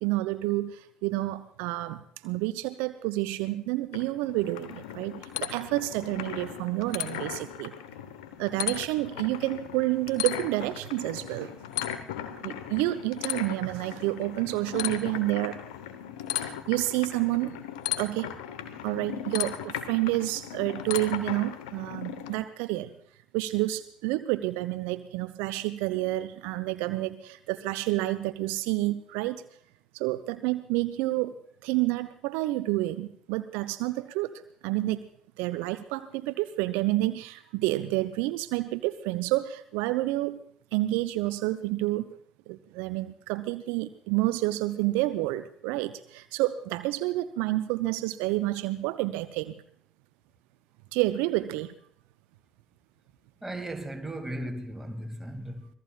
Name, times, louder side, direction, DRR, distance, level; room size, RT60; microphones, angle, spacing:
voice 1, 0.0-7.7 8.4-11.5 12.4-15.6 16.4-17.6 18.0-18.3 18.8-22.9 23.3-29.4 29.9-34.3 34.6-35.0 35.4-40.4 40.7-42.1 42.5-49.5 50.9-51.7, right 17 dB, 65° right, 0.5 m, -29 dB
sound 1, 3.9-22.4, left 11 dB, 75° left, 1.0 m, -37 dB
voice 2, 53.4-55.7, right 1 dB, 10° right, 2.2 m, -36 dB
26.0 x 18.0 x 2.3 m
figure-of-eight pair, 50°, 4 cm